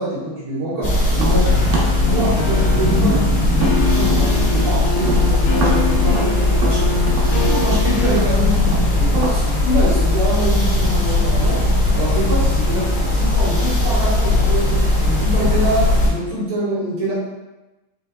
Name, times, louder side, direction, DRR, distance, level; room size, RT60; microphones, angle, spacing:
voice 1, 0.0-1.5 2.0-3.2 3.6-6.9 7.3-8.6 9.0-11.6 11.9-17.1, right 1 dB, 65° right, -9 dB, 3.1 m, -25 dB
sound 1, 0.8-16.1, left 2 dB, 50° left, 1.6 m, -18 dB
Tap, 1.1-4.7 5.0-9.4, right 2 dB, 80° right, 1.9 m, -27 dB
sound 2, 1.4-8.2, left 3 dB, 80° left, 2.5 m, -25 dB
7.5 x 3.0 x 2.3 m, 1.0 s
omnidirectional pair, 4.8 m